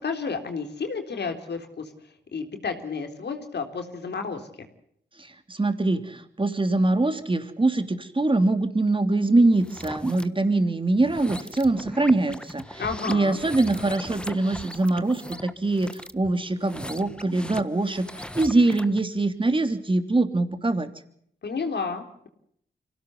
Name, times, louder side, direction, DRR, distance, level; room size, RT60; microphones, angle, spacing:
voice 1, 0.0-1.9 2.3-4.7 12.8-13.4 21.4-22.3, left 5 dB, 75° left, 5 dB, 3.7 m, -31 dB
voice 2, 5.2-12.8 13.1-20.9, right 2 dB, 30° right, 8 dB, 3.1 m, -23 dB
sound 1, 9.5-10.3 10.9-19.0, left 1 dB, 5° left, 1.4 m, -39 dB
25.0 x 17.5 x 8.0 m, 0.69 s
cardioid pair, 60°, 18 cm